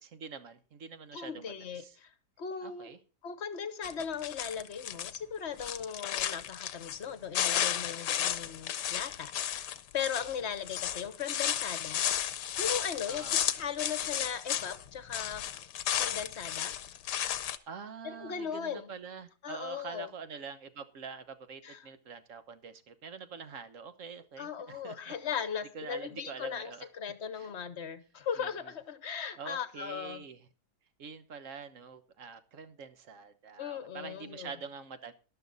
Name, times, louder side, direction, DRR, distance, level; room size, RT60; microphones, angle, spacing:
voice 1, 0.0-2.0 2.6-3.0 13.1-13.4 17.7-25.4 25.7-26.9 27.3-27.5 28.4-28.7 29.4-30.5 31.0-35.1, right 6 dB, 50° right, 1.3 m, -45 dB
voice 2, 1.1-2.1 2.4-2.9 3.2-9.7 9.9-12.1 12.6-13.2 13.5-15.5 16.0-16.8 18.0-18.9 19.4-20.1 21.6-21.8 24.4-30.2 33.6-34.5, left 7 dB, 45° left, 1.2 m, -38 dB
sound 1, 3.8-5.2 5.5-7.1 7.3-14.8 15.1-17.6, left 10 dB, 75° left, 1.4 m, -33 dB
13.0 x 11.5 x 4.0 m
omnidirectional pair, 1.9 m